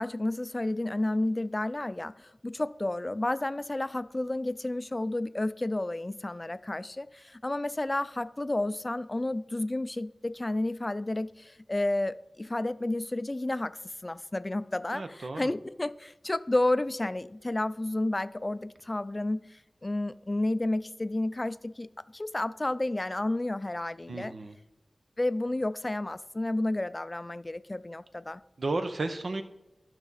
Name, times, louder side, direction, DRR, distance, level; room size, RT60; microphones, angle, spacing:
voice 1, 0.0-24.3 25.2-28.4, left 2 dB, 30° left, 0.3 m, -31 dB
voice 2, 14.9-15.5 24.1-24.6 28.6-29.4, right 2 dB, 70° right, 0.8 m, -33 dB
11.5 x 6.0 x 4.1 m
wide cardioid pair, 65°, 0 cm